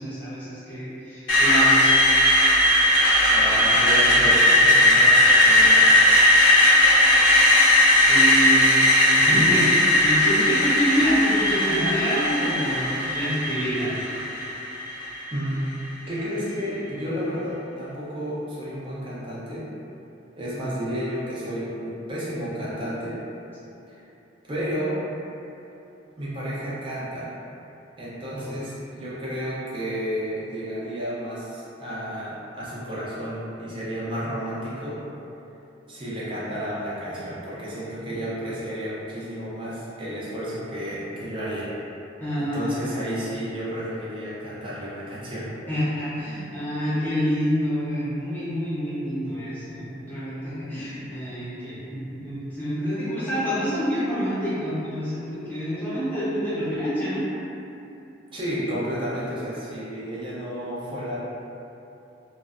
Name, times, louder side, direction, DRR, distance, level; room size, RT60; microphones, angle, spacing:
voice 1, 0.0-2.0 8.0-14.1 28.3-28.5 42.2-42.7 45.7-57.2, equal, 10° left, -13 dB, 0.8 m, -27 dB
Screech, 1.3-15.2, left 1 dB, 75° left, 0.6 m, -18 dB
voice 2, 3.3-5.9 15.3-15.7 16.1-19.7 20.4-23.2 23.9-24.0 24.5-25.0 26.2-27.3 28.0-35.0 35.9-41.7 42.4-45.5 58.3-61.2, equal, 25° right, -9 dB, 0.5 m, -31 dB
2.4 x 2.1 x 2.4 m, 2.9 s
head